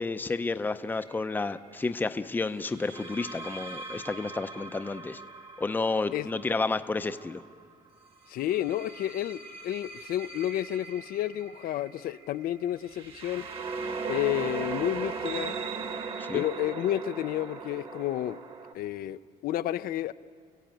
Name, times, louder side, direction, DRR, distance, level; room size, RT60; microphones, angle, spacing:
voice 1, 0.0-5.2 5.6-7.4 16.2-16.4, left 3 dB, 10° left, 0.6 m, -31 dB
sound 1, 0.9-1.2 2.7-7.5 8.3-18.7, right 4 dB, 35° right, 1.4 m, -39 dB
voice 2, 8.3-13.5 14.1-15.6 16.3-18.4 18.7-20.1, left 12 dB, 65° left, 0.5 m, -31 dB
29.0 x 15.5 x 9.1 m
cardioid pair, 150°, 16 cm